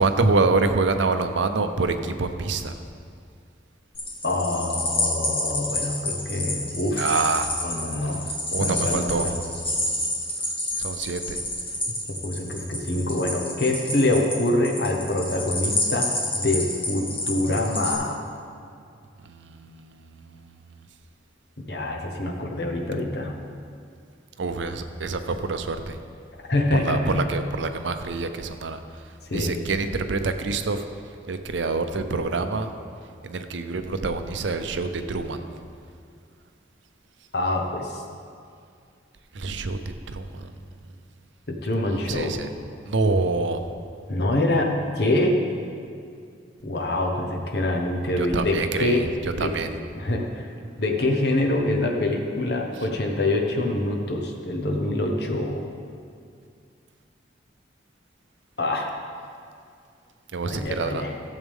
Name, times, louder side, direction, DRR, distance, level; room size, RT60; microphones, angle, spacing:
voice 1, 0.0-2.7 7.0-7.5 8.3-9.5 10.8-11.5 19.2-20.9 24.4-26.0 26.7-30.9 31.3-32.7 33.2-35.4 39.3-40.5 41.9-42.5 42.9-43.7 48.2-49.7 52.7-52.9 60.3-61.0, right 3 dB, 75° right, 8 dB, 0.6 m, -26 dB
sound 1, 3.9-17.9, left 1 dB, 30° left, 1.5 m, -29 dB
voice 2, 4.2-7.1 7.6-8.3 8.6-9.4 12.2-18.2 21.6-23.3 26.5-27.2 29.3-29.6 37.3-38.0 41.5-42.3 44.1-45.4 46.6-49.0 49.4-49.5 50.0-50.5 50.8-55.6 58.6-58.9 60.5-61.1, left 1 dB, 60° left, 1 dB, 1.0 m, -25 dB
14.5 x 7.3 x 3.6 m, 2.3 s
head